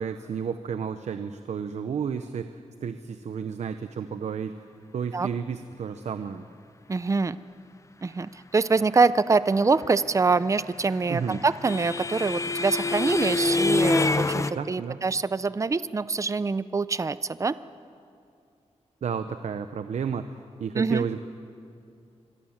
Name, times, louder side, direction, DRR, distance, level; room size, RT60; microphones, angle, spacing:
voice 1, 0.0-4.5 4.9-6.4 11.1-11.4 14.5-15.0 19.0-20.3 20.6-21.2, right 6 dB, 85° right, 9 dB, 0.9 m, -32 dB
voice 2, 6.9-7.4 8.0-17.5 20.8-21.0, right 4 dB, 25° right, 15 dB, 0.6 m, -25 dB
sound 1, 10.6-14.5, left 3 dB, 25° left, 0.7 m, -26 dB
25.0 x 24.0 x 7.4 m, 2.4 s
wide cardioid pair, 110°, 11 cm